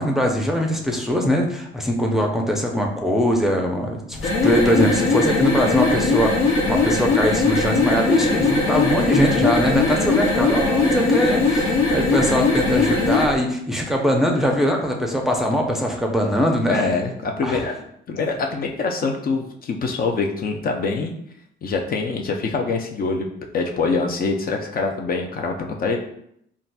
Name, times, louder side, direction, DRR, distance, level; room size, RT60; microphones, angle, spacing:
voice 1, 0.0-16.9 17.4-17.7, equal, ahead, 1 dB, 0.5 m, -22 dB
sound 1, 4.1-13.3, left 3 dB, 85° left, 0.7 m, -20 dB
voice 2, 16.7-17.7 18.1-21.1 21.6-23.3 23.5-26.0, left 4 dB, 50° left, 2 dB, 0.5 m, -24 dB
3.9 x 2.3 x 2.2 m, 0.72 s
cardioid pair, 90°, 20 cm